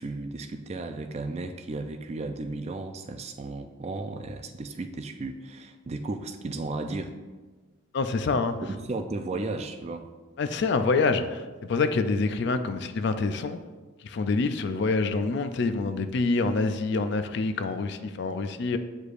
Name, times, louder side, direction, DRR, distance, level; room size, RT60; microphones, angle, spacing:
voice 1, 0.0-7.1 8.6-10.1, right 2 dB, 30° right, 7 dB, 0.3 m, -34 dB
voice 2, 7.9-8.6 10.4-13.6 14.0-18.8, left 3 dB, 55° left, 9 dB, 0.4 m, -26 dB
8.1 x 4.9 x 2.5 m, 1.3 s
head